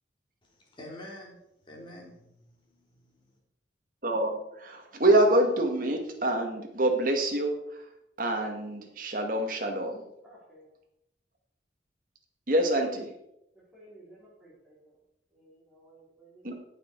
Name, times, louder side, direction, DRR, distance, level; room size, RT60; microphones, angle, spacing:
voice 1, 0.4-1.3 1.7-3.3, left 1 dB, 25° left, -2 dB, 3.6 m, -47 dB
voice 2, 4.0-7.6 8.2-10.1 12.5-13.1 16.4-16.5, right 1 dB, 50° right, 3 dB, 2.0 m, -26 dB
voice 3, 10.2-10.7 13.7-14.9 15.3-16.5, right 1 dB, 5° right, -10 dB, 4.3 m, -55 dB
16.0 x 6.9 x 4.8 m, 0.83 s
head